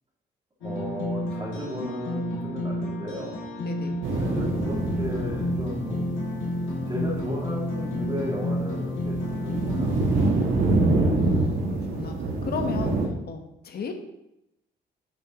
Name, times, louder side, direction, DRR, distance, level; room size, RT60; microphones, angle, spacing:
sound 1, 0.6-10.6, left 1 dB, 85° left, 2.3 m, -31 dB
voice 1, 0.6-3.4 4.1-6.1 6.9-9.2 9.4-10.5 12.7-12.9, equal, 25° right, -6 dB, 2.5 m, -35 dB
voice 2, 3.6-4.0 11.1-12.2 12.4-13.0 13.3-13.9, left 5 dB, 50° left, 6 dB, 1.1 m, -34 dB
sound 2, 4.0-13.1, right 2 dB, 75° right, 1.6 m, -27 dB
9.1 x 6.6 x 3.0 m, 0.87 s
cardioid pair, 90°, 20 cm